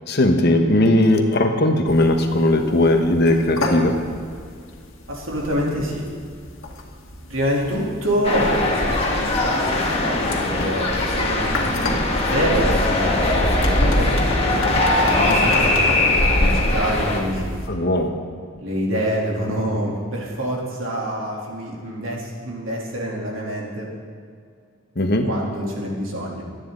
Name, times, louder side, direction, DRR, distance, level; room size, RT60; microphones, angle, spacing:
voice 1, 0.1-4.0 17.7-18.1 25.0-25.3, left 1 dB, 55° left, 4 dB, 1.4 m, -18 dB
sound 1, 1.9-17.7, left 1 dB, 75° left, 2.0 m, -32 dB
voice 2, 5.1-6.1 7.3-11.5 12.1-17.5 18.6-23.9 25.2-26.4, equal, 90° right, -3 dB, 3.4 m, -26 dB
sound 2, 8.2-17.2, left 2 dB, 30° left, 2.0 m, -20 dB
25.0 x 9.6 x 4.0 m, 2.2 s
head